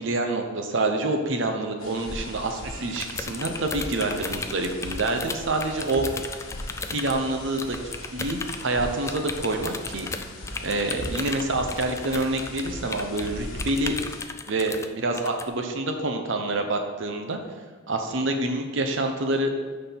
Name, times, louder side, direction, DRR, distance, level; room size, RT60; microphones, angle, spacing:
voice 1, 0.0-6.1 6.9-10.1 10.6-13.9 14.5-17.4 17.9-19.5, right 2 dB, 60° right, 4 dB, 0.8 m, -27 dB
sound 1, 1.8-14.3, left 1 dB, 85° left, 1.4 m, -39 dB
sound 2, 2.9-7.2 7.6-8.6 9.1-13.3 13.6-14.9 15.1-15.4, left 4 dB, 15° left, 0.3 m, -35 dB
6.5 x 5.5 x 5.9 m, 1.4 s
head